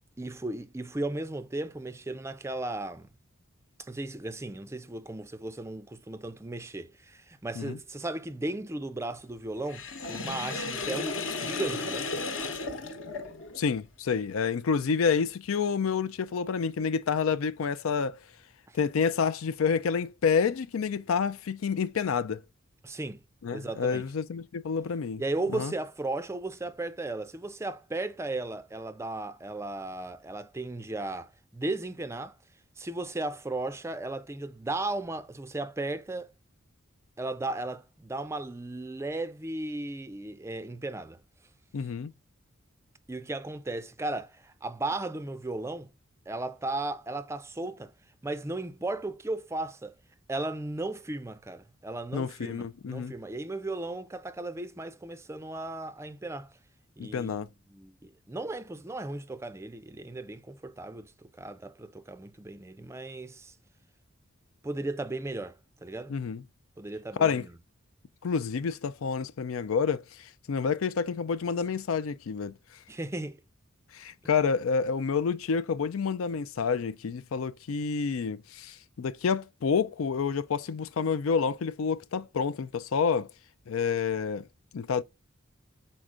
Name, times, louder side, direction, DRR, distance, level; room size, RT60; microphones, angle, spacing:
voice 1, 0.2-3.1 3.8-12.1 18.7-18.8 22.8-23.2 23.5-24.0 25.2-32.4 32.8-36.3 37.2-41.2 43.1-45.9 46.3-47.9 48.2-50.0 50.3-56.5 57.0-63.5 64.6-66.1 66.8-67.5 72.9-73.4, right 2 dB, 15° right, 0.4 m, -36 dB
Sink (filling or washing), 9.7-13.6, left 3 dB, 65° left, 1.0 m, -34 dB
voice 2, 13.6-18.2 18.7-22.4 23.4-25.2 25.5-25.7 41.7-42.1 52.1-53.1 57.0-57.5 66.1-66.4 67.2-67.4 68.2-72.5 73.9-83.3 83.7-84.5 84.7-85.0, left 6 dB, 80° left, 0.4 m, -28 dB
6.3 x 4.4 x 3.7 m
head